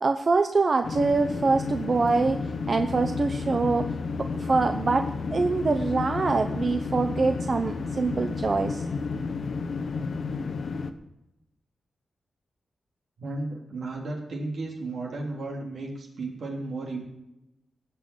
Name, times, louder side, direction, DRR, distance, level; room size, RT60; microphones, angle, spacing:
voice 1, 0.0-2.4 2.7-3.9 4.2-8.9, right 4 dB, 45° right, 7 dB, 0.7 m, -24 dB
sound 1, 0.8-10.9, left 4 dB, 65° left, 1.0 m, -31 dB
voice 2, 13.2-17.0, right 2 dB, 70° right, 0 dB, 3.5 m, -34 dB
17.0 x 6.1 x 8.9 m, 0.91 s
wide cardioid pair, 100°, 0 cm